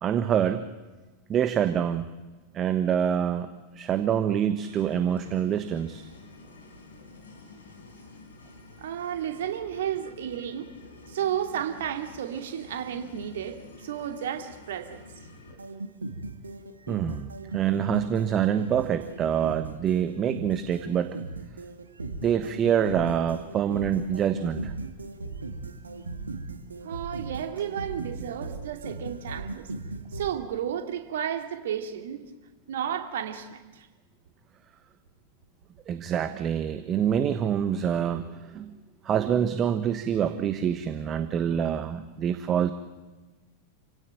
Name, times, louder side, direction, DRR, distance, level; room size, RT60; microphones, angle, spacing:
voice 1, 0.0-0.6 1.3-2.1 2.5-6.0 16.9-21.2 22.2-24.7 35.9-38.7 39.0-42.7, right 9 dB, 30° right, 10 dB, 1.2 m, -26 dB
sound 1, 4.6-15.5, left 3 dB, 65° left, 4.8 m, -49 dB
voice 2, 8.8-10.7 11.1-15.0 26.8-29.7 30.1-32.2 32.7-33.9, right 9 dB, 60° right, 6 dB, 2.6 m, -32 dB
sound 2, 15.5-30.3, right 3 dB, 75° right, 2.1 m, -38 dB
28.5 x 17.0 x 9.1 m, 1.2 s
figure-of-eight pair, 90°, 0 cm